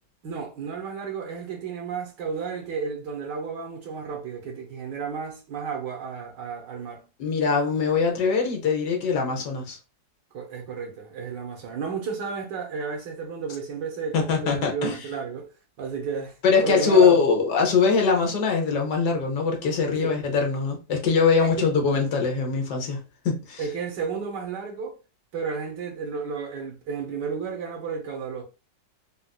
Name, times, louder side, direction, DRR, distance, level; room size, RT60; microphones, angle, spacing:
voice 1, 0.2-7.1 10.3-15.5 15.8-16.4 16.6-17.2 20.0-20.2 21.4-21.7 23.6-25.0 25.3-28.4, right 5 dB, 70° right, 1.5 m, -32 dB
voice 2, 7.2-9.8 14.1-15.0 16.4-23.0 23.2-23.6, left 5 dB, 70° left, 1.3 m, -22 dB
4.1 x 2.4 x 2.3 m
omnidirectional pair, 2.0 m